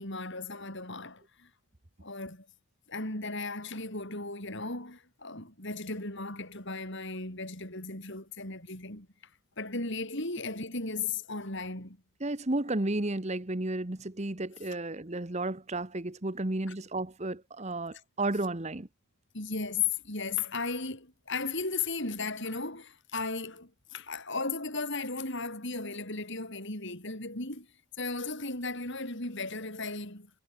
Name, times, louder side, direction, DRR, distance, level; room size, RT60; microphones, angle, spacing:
voice 1, 0.0-1.5 2.0-2.5 2.9-9.1 9.6-12.0 16.7-16.8 19.3-27.7 28.0-30.3, left 4 dB, 55° left, 6.5 m, -36 dB
voice 2, 12.2-18.9, right 2 dB, 30° right, 1.2 m, -33 dB
head